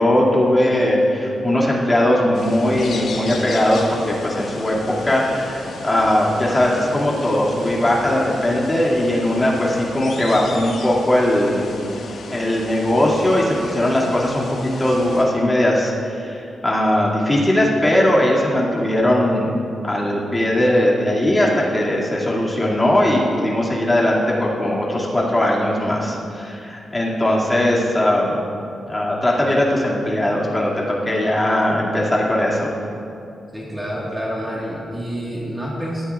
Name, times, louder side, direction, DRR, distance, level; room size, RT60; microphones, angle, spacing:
voice 1, 0.0-4.8 5.0-11.7 12.3-19.5 19.8-28.4 28.8-32.7, left 1 dB, 15° left, -5 dB, 2.3 m, -19 dB
sound 1, 2.3-15.2, left 3 dB, 90° left, 1.6 m, -34 dB
voice 2, 33.5-36.0, equal, 10° right, -5 dB, 1.6 m, -28 dB
19.0 x 13.0 x 2.4 m, 2.6 s
wide cardioid pair, 140°, 0 cm